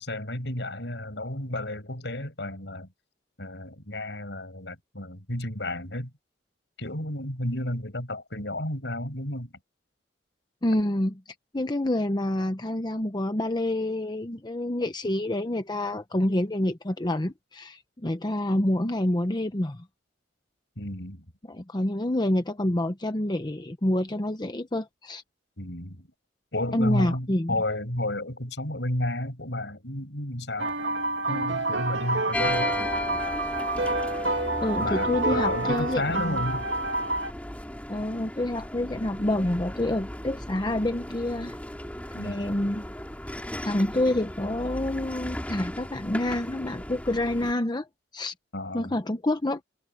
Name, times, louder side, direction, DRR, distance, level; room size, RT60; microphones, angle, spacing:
voice 1, 0.0-2.9 3.4-6.1 6.8-9.5 20.8-21.3 25.6-26.1 26.5-30.8 31.3-32.9 34.8-36.7 42.1-42.5 48.5-48.9, left 1 dB, 70° left, 7.0 m, -32 dB
voice 2, 10.6-11.2 11.5-19.8 21.5-25.2 26.7-27.6 34.6-36.4 37.9-41.6 42.2-42.8 43.6-47.9 48.1-48.3 48.7-49.6, left 1 dB, 25° left, 0.9 m, -27 dB
sound 1, 30.6-37.3, right 2 dB, 80° right, 2.0 m, -28 dB
sound 2, 32.3-47.5, left 1 dB, 10° left, 3.1 m, -35 dB
head